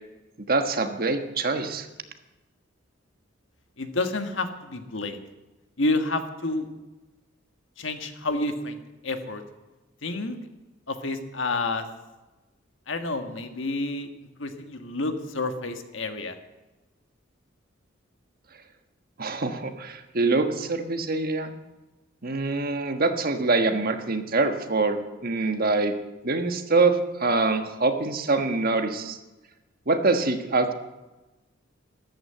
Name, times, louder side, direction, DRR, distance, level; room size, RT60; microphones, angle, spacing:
voice 1, 0.5-1.9 19.2-21.5 22.2-25.9 26.2-29.2 29.9-30.7, right 3 dB, 50° right, 7 dB, 1.4 m, -24 dB
voice 2, 3.8-5.2 5.8-6.7 7.8-9.4 10.0-10.4 10.9-11.8 12.9-14.1 14.4-16.3, left 2 dB, 70° left, 7 dB, 1.6 m, -29 dB
14.0 x 12.5 x 7.8 m, 1.1 s
head